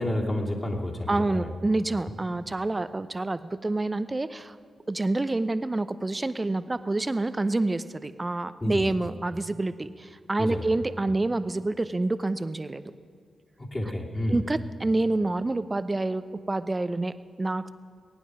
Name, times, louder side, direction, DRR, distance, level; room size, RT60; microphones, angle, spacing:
voice 1, 0.0-1.5 8.6-8.9 10.4-10.7 13.6-14.4, left 1 dB, 30° left, -3 dB, 3.0 m, -30 dB
voice 2, 1.1-4.6 4.9-12.8 14.3-17.7, right 2 dB, 30° right, 13 dB, 0.7 m, -28 dB
21.0 x 9.3 x 6.2 m, 2.1 s
supercardioid pair, 45°, 0 cm